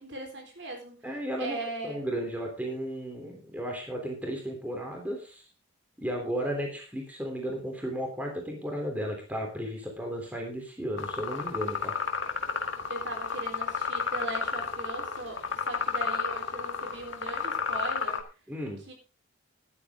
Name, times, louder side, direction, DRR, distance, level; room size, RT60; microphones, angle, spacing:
voice 1, 0.0-1.0 1.4-2.0 12.9-18.2 18.9-19.0, right 2 dB, 55° right, 3 dB, 3.9 m, -39 dB
voice 2, 1.0-5.4 6.0-11.9 18.5-18.8, equal, 5° right, 1 dB, 3.4 m, -34 dB
sound 1, 11.0-18.2, left 5 dB, 65° left, 1.6 m, -32 dB
13.0 x 11.5 x 3.7 m, 0.34 s
head